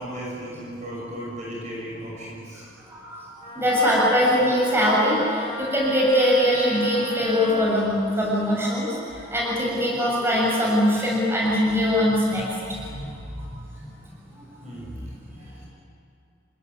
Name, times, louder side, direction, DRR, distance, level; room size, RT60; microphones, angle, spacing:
voice 1, 0.0-2.7 14.6-15.0 15.3-15.7, equal, 35° right, -4 dB, 6.3 m, -36 dB
voice 2, 2.9-3.2 3.6-9.0 9.3-12.6 12.9-13.1, equal, 10° right, -5 dB, 7.2 m, -22 dB
Wind instrument woodwind instrument, 3.4-7.7, left 2 dB, 35° left, 4.1 m, -36 dB
28.5 x 19.5 x 9.6 m, 2.7 s
head